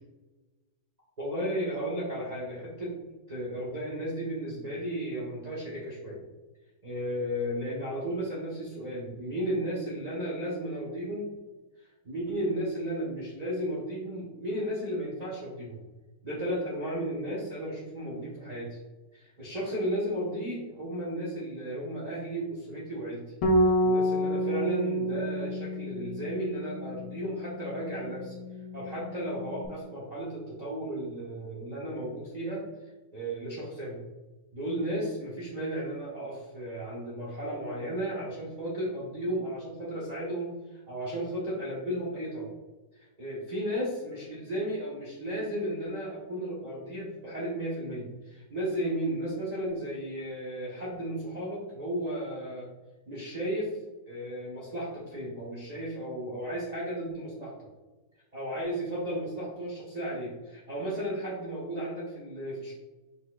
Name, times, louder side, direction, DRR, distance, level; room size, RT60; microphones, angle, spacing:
voice 1, 1.2-6.2 6.8-11.3 12.0-15.8 16.2-18.8 19.1-23.2 23.8-28.3 28.7-32.7 33.1-34.0 34.5-42.5 43.0-52.7 53.1-53.8 54.1-57.5 58.3-62.7, right 1 dB, 40° right, -7 dB, 0.6 m, -34 dB
Bass guitar, 23.4-29.7, equal, 90° left, 1.5 m, -29 dB
5.1 x 4.4 x 2.3 m, 1.2 s
omnidirectional pair, 2.3 m